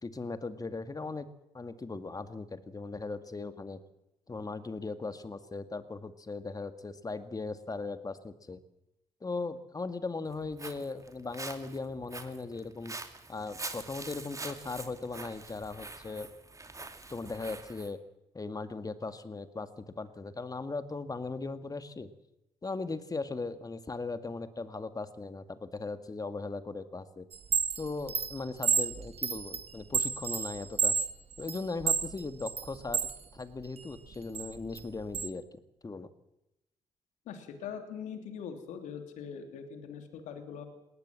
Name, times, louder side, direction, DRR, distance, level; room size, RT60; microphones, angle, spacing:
voice 1, 0.0-1.3 1.5-3.8 4.3-8.6 9.2-12.9 13.3-16.3 17.1-18.0 18.3-19.7 20.0-22.1 22.6-27.3 27.8-31.0 31.4-35.4 35.8-36.1, left 3 dB, 30° left, 11 dB, 2.1 m, -38 dB
Walk footsteps, 10.3-17.9, right 3 dB, 25° right, 2.6 m, -45 dB
Chime, 27.3-33.2 33.6-35.3, right 6 dB, 50° right, 1.9 m, -31 dB
voice 2, 37.3-40.7, left 7 dB, 75° left, 7 dB, 3.0 m, -42 dB
20.0 x 17.5 x 7.6 m, 0.88 s
hypercardioid pair, 55°, 13 cm